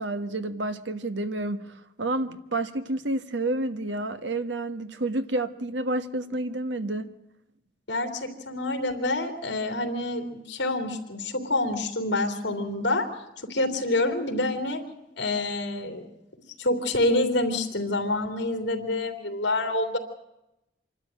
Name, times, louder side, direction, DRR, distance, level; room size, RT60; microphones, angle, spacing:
voice 1, 0.0-7.1, right 2 dB, 90° right, 1.5 m, -30 dB
voice 2, 7.9-13.1 13.5-14.8 15.2-16.0 16.6-20.0, left 2 dB, 75° left, 3.0 m, -27 dB
26.0 x 12.5 x 8.8 m
head